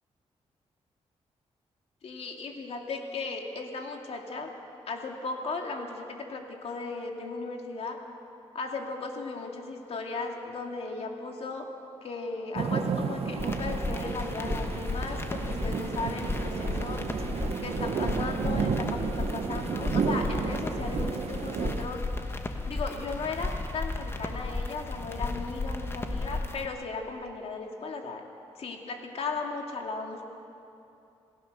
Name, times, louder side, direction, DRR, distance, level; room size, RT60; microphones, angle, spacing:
voice 1, 2.0-4.5 4.9-8.0 8.5-11.7 12.0-17.0 17.6-22.0 22.7-28.2 28.6-30.2, left 3 dB, 65° left, 2 dB, 2.4 m, -36 dB
sound 1, 12.6-21.9, right 5 dB, 65° right, 1.1 m, -32 dB
sound 2, 13.4-26.7, left 2 dB, 20° left, 1.3 m, -34 dB
27.5 x 16.5 x 6.7 m, 2.8 s
wide cardioid pair, 135°, 11 cm